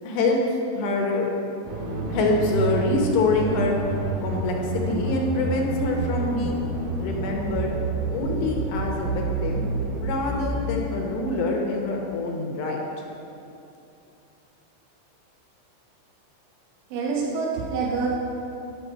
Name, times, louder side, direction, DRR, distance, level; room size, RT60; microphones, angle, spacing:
voice 1, 0.0-0.4 0.7-1.3 1.8-3.8 4.2-4.6 4.9-6.6 7.0-7.7 8.1-9.6 10.0-12.8, left 3 dB, 75° left, 0 dB, 3.0 m, -25 dB
sound 1, 1.6-10.8, right 3 dB, 65° right, 3.0 m, -29 dB
voice 2, 16.9-18.1, right 4 dB, 85° right, -3 dB, 3.5 m, -26 dB
10.5 x 6.5 x 5.6 m, 2.7 s
omnidirectional pair, 5.5 m